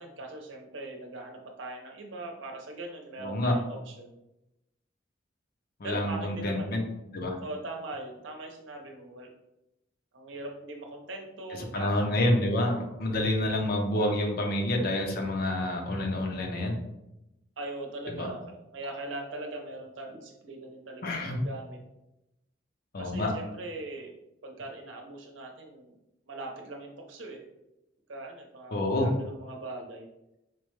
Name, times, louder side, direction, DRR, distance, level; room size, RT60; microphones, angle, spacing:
voice 1, 0.0-4.2 5.8-6.8 7.4-9.3 10.1-11.9 17.6-21.8 23.0-24.1 24.4-25.9 26.3-27.4 28.1-30.1, right 2 dB, 75° right, 2 dB, 0.7 m, -41 dB
voice 2, 3.2-3.6 5.8-6.8 7.1-7.4 11.7-16.8 18.1-18.3 21.0-21.4 22.9-23.3 28.7-29.1, left 1 dB, 55° left, 2 dB, 0.6 m, -28 dB
4.4 x 2.1 x 3.1 m, 0.91 s
head